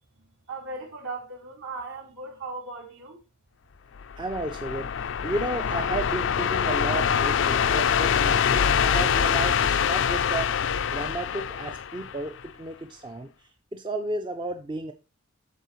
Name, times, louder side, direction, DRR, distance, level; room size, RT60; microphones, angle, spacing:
voice 1, 0.2-3.2, right 3 dB, 75° right, 3.7 m, -38 dB
sound 1, 4.0-12.5, left 7 dB, 60° left, 0.4 m, -24 dB
voice 2, 4.2-4.9 5.2-10.5 10.9-13.3 13.7-14.9, right 2 dB, 20° right, 0.5 m, -33 dB
12.0 x 4.6 x 3.0 m
head